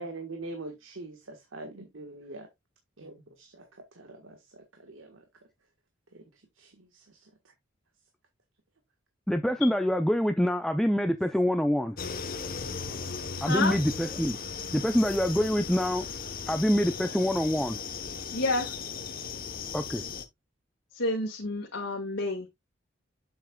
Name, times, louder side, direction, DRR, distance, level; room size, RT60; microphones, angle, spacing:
voice 1, 0.0-2.5 3.0-5.2 6.1-6.2 6.6-7.3, right 2 dB, 85° right, 1.4 m, -43 dB
voice 2, 9.3-12.0 13.4-14.4 14.7-16.1 16.5-17.8 19.7-20.0, equal, ahead, 0.5 m, -25 dB
sound 1, 12.0-20.2, left 6 dB, 45° left, 1.0 m, -37 dB
voice 3, 13.4-13.8 18.3-18.7 20.9-22.5, left 2 dB, 65° left, 1.8 m, -29 dB
7.6 x 7.2 x 2.3 m
head